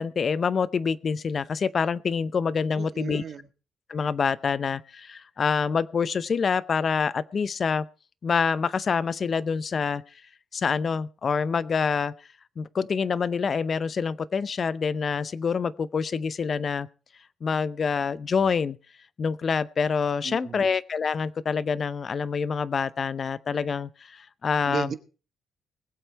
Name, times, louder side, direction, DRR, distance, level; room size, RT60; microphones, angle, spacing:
voice 1, 0.0-3.2 3.9-7.9 8.2-10.0 10.5-12.1 12.6-16.9 17.4-18.8 19.2-24.9, left 5 dB, 45° left, 0.6 m, -26 dB
voice 2, 2.7-3.5 20.2-20.7 24.6-24.9, right 7 dB, 55° right, 1.3 m, -35 dB
20.5 x 7.9 x 4.5 m
cardioid pair, 90°, 0 cm